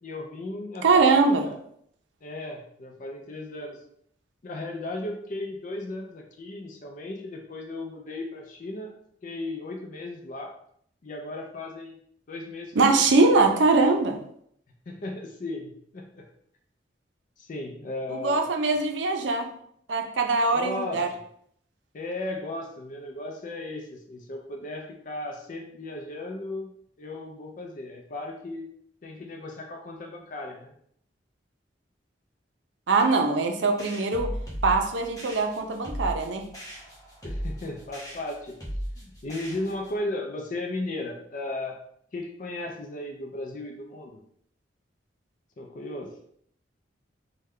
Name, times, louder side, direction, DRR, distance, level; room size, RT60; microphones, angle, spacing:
voice 1, 0.0-1.6 2.2-3.8 4.4-8.9 9.2-10.5 11.0-11.9 12.3-13.0 14.9-16.3 17.4-18.8 20.5-21.0 21.9-28.6 29.0-30.7 37.2-38.5 39.0-41.8 42.1-44.2 45.6-46.1, left 2 dB, 45° left, 2 dB, 0.4 m, -36 dB
voice 2, 0.8-1.5 12.8-14.2 18.2-19.5 19.9-21.1 32.9-34.3 34.6-36.4, right 3 dB, 80° right, 4 dB, 0.5 m, -22 dB
sound 1, 33.8-40.0, equal, 20° left, 1.0 m, -36 dB
3.2 x 2.2 x 3.6 m, 0.67 s
head